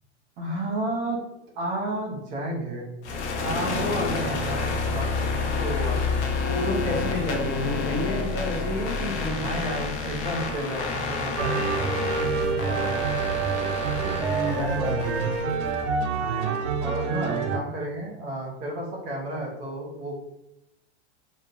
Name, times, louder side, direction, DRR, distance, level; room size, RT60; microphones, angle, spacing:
voice 1, 0.4-1.2 1.5-2.9 3.4-6.4 9.3-12.0 12.5-13.0 16.1-20.2, right 1 dB, 40° right, -2 dB, 1.0 m, -32 dB
sound 1, 3.0-15.8, left 4 dB, 85° left, 0.7 m, -29 dB
voice 2, 6.4-9.5 14.2-15.5, left 1 dB, 35° left, -4 dB, 1.3 m, -30 dB
sound 2, 11.4-17.6, right 5 dB, 85° right, 0.5 m, -27 dB
3.0 x 2.2 x 2.5 m, 0.85 s
supercardioid pair, 125°, 34 cm